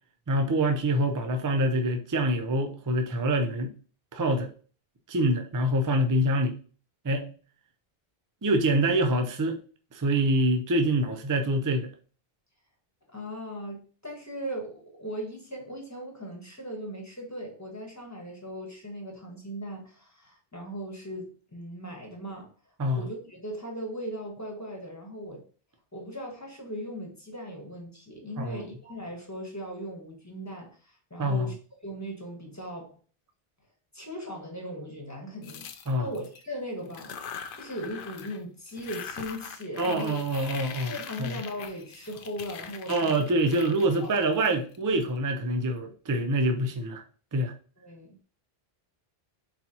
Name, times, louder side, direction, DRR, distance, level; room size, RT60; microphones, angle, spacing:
voice 1, 0.3-3.7 4.1-4.5 5.1-6.6 7.0-7.3 8.4-9.6 9.9-11.9 22.8-23.1 28.4-28.6 31.2-31.5 35.9-36.1 39.8-40.9 41.2-41.3 42.9-47.0 47.3-47.5, right 1 dB, 30° right, 0.4 m, -25 dB
voice 2, 13.1-22.5 22.9-25.4 25.9-31.6 31.8-32.9 33.9-35.7 36.0-37.2 37.5-40.2 40.9-43.1 43.9-44.1 47.8-48.2, equal, 15° left, 1.1 m, -38 dB
sound 1, 35.4-36.4 36.9-38.4 38.7-45.0, left 7 dB, 65° left, 0.7 m, -42 dB
4.0 x 4.0 x 2.8 m
omnidirectional pair, 1.1 m